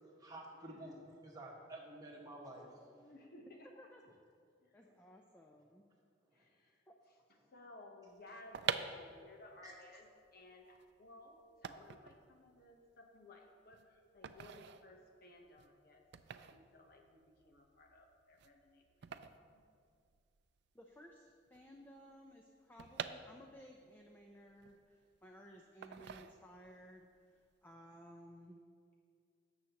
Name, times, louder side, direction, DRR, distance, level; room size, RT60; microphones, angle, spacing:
voice 1, 0.0-3.1 6.3-6.4 9.6-9.7, right 1 dB, 20° right, -3 dB, 1.6 m, -51 dB
voice 2, 0.5-1.1 3.0-4.1 4.6-4.8 6.3-16.0 16.3-19.1 19.5-19.6, left 2 dB, 55° left, 2 dB, 1.0 m, -59 dB
voice 3, 4.7-5.9 6.9-7.0 20.7-28.6, equal, 10° left, 1 dB, 0.6 m, -58 dB
sound 1, 8.3-20.4 20.7-20.8 21.0-23.8 24.2-25.3 25.8-26.8 27.2-27.5, right 7 dB, 65° right, 0.4 m, -46 dB
17.0 x 7.1 x 3.0 m, 2.2 s
head